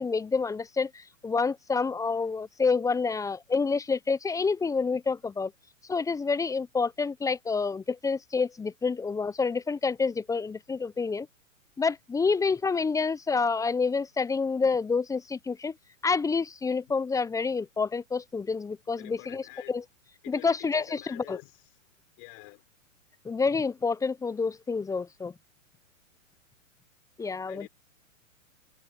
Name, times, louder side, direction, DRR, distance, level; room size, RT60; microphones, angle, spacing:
voice 1, 0.0-5.5 5.9-11.3 11.8-15.7 16.0-19.8 20.3-21.4 23.2-25.3 27.2-27.7, left 4 dB, 10° left, 1.0 m, -28 dB
voice 2, 19.0-19.7 20.2-21.6 22.2-22.6 27.5-27.7, left 40 dB or more, 40° left, 5.3 m, -47 dB
hypercardioid pair, 115°, 40 cm